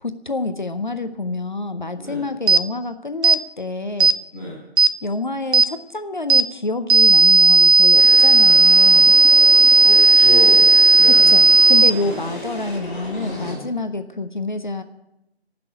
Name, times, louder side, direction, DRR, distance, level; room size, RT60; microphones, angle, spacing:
voice 1, 0.0-4.1 5.0-9.2 11.0-14.8, left 3 dB, 45° left, 9 dB, 0.7 m, -27 dB
sound 1, 2.5-2.6 3.2-3.4 4.0-4.2 4.8-4.9 5.5-5.7 6.3-6.5 6.9-11.9, right 3 dB, 85° right, 0.6 m, -12 dB
sound 2, 7.9-13.6, left 1 dB, 15° left, 3.5 m, -34 dB
voice 2, 9.8-11.4 11.9-12.2 13.1-13.7, equal, 25° right, -11 dB, 6.0 m, -31 dB
14.5 x 6.1 x 9.9 m, 0.88 s
figure-of-eight pair, 175°, 33 cm